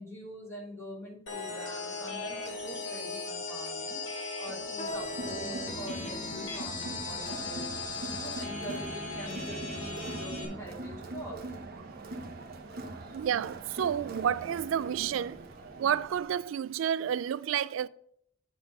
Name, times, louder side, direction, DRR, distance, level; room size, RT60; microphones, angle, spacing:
voice 1, 0.0-11.4, equal, 15° left, 3.0 m, -44 dB
sound 1, 1.3-10.4, left 3 dB, 70° left, 2.1 m, -38 dB
sound 2, 4.8-10.4 11.1-11.3 12.0-12.3 12.7-12.8 13.6-13.7, equal, 35° left, 1.3 m, -47 dB
Crowd, 4.9-16.4, right 2 dB, 50° right, 1.0 m, -42 dB
voice 2, 13.1-15.4 15.8-17.9, right 9 dB, 85° right, 0.3 m, -30 dB
8.6 x 4.1 x 5.9 m
head